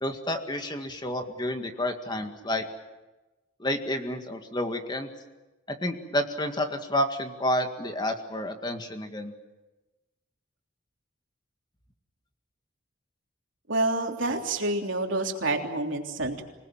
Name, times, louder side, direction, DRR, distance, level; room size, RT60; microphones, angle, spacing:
voice 1, 0.0-2.7 3.6-5.1 5.8-9.3, left 1 dB, 20° left, 6 dB, 2.0 m, -30 dB
voice 2, 13.7-16.4, right 2 dB, 85° right, 2 dB, 3.3 m, -28 dB
27.0 x 19.5 x 9.0 m, 1.1 s
head